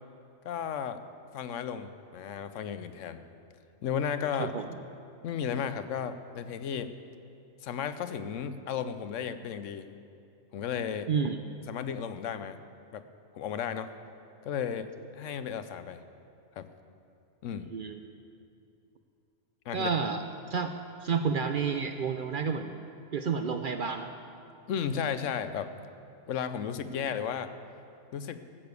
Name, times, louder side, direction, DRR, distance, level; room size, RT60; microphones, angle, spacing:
voice 1, 0.4-1.0 1.3-3.3 3.8-4.5 5.2-6.9 7.6-9.9 10.5-11.1 11.7-12.6 12.9-13.0 13.3-13.9 14.4-16.0 16.6-16.7 17.4-17.7 19.7-19.9 24.7-25.7 26.3-27.5 28.1-28.4, left 8 dB, 80° left, 11 dB, 1.0 m, -34 dB
voice 2, 11.1-11.4 17.7-18.0 19.7-20.2 20.5-20.7 21.0-22.7 23.1-24.1 26.9-27.2, right 5 dB, 60° right, 7 dB, 0.6 m, -30 dB
14.0 x 6.9 x 8.1 m, 2.6 s
omnidirectional pair, 1.3 m